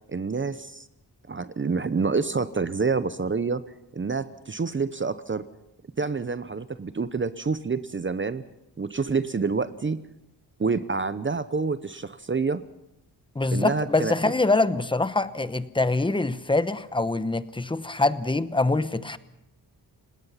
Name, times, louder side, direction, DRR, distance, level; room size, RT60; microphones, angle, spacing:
voice 1, 0.1-0.9 1.3-3.6 3.9-5.4 6.0-8.4 8.8-10.0 10.6-12.6 13.5-14.3, right 4 dB, 30° right, 13 dB, 0.8 m, -27 dB
voice 2, 13.3-19.2, left 2 dB, 10° left, 13 dB, 0.9 m, -24 dB
29.5 x 18.0 x 5.8 m, 0.85 s
wide cardioid pair, 120°, 40 cm